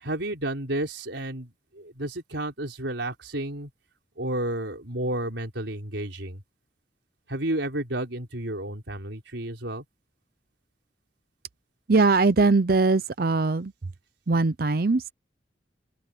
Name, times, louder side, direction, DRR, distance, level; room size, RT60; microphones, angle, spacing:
voice 1, 0.0-1.5 1.8-3.7 4.2-6.4 7.3-9.8, right 1 dB, 80° right, 4.4 m, -31 dB
voice 2, 11.9-13.7 14.3-15.1, right 3 dB, 50° right, 0.6 m, -21 dB
open air
head